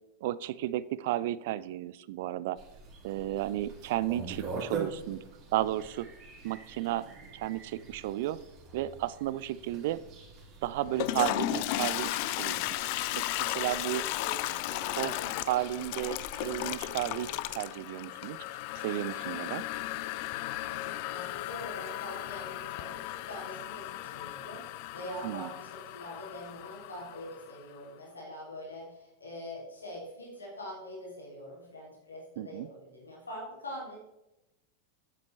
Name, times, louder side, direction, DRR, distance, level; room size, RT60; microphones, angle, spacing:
voice 1, 0.2-2.6 3.0-5.2 5.5-6.1 6.4-7.1 7.3-8.4 8.7-10.0 10.6-12.6 13.1-14.0 14.9-15.1 15.5-16.2 16.4-18.4 18.8-19.6 25.2-25.5 32.4-32.7, right 14 dB, 50° right, 18 dB, 0.3 m, -33 dB
sound 1, 2.6-17.6, right 4 dB, 35° right, 2.4 m, -46 dB
Toilet flush, 10.8-27.6, left 16 dB, 45° left, 0.3 m, -35 dB
voice 2, 13.5-15.6 15.9-16.2 20.6-34.0, equal, 75° left, -3 dB, 2.9 m, -44 dB
9.2 x 8.2 x 3.3 m, 0.93 s
figure-of-eight pair, 90°, 0 cm